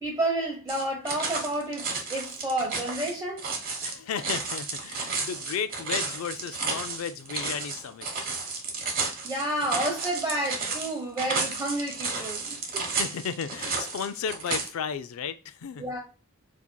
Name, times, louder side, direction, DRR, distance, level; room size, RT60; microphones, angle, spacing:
voice 1, 0.0-3.5 9.2-12.8 15.8-16.0, right 1 dB, 15° right, 0.9 m, -30 dB
sound 1, 0.7-14.7, right 4 dB, 45° right, 1.1 m, -32 dB
voice 2, 3.8-8.1 12.9-15.8, left 7 dB, 70° left, 0.4 m, -34 dB
7.0 x 2.7 x 2.2 m
head